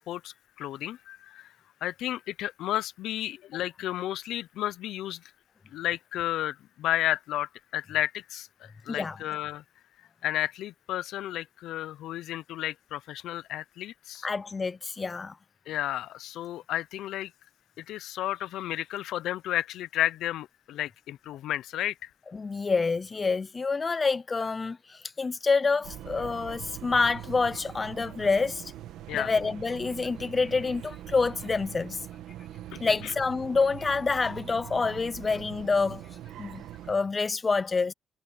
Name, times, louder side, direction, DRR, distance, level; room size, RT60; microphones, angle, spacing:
voice 1, 0.1-1.5 1.8-5.2 5.7-9.6 10.2-14.3 15.7-17.3 17.8-22.1 29.1-29.3 32.7-33.1, left 13 dB, 85° left, 0.5 m, -32 dB
voice 2, 14.2-15.4 22.3-28.7 29.1-32.0 32.8-36.1 36.4-37.9, left 4 dB, 30° left, 0.4 m, -27 dB
sound 1, 25.8-36.9, right 12 dB, 85° right, 1.8 m, -43 dB
cardioid pair, 90°, 0 cm